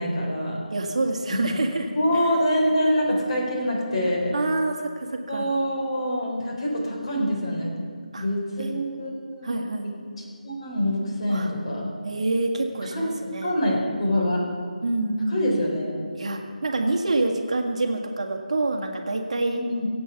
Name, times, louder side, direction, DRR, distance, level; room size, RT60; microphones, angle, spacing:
voice 1, 0.0-0.6 1.5-1.6 1.9-4.3 5.3-7.8 8.1-9.9 10.4-11.9 12.9-13.0 13.4-14.4 15.3-15.9 19.5-19.9, equal, 45° left, -2 dB, 4.2 m, -25 dB
voice 2, 0.7-2.3 4.3-5.5 8.1-8.2 8.6-8.7 9.4-9.9 11.3-11.5 12.0-13.5 14.8-15.7 16.2-19.6, right 2 dB, 50° right, 2 dB, 1.6 m, -27 dB
23.5 x 8.2 x 5.8 m, 2.1 s
figure-of-eight pair, 170°, 4 cm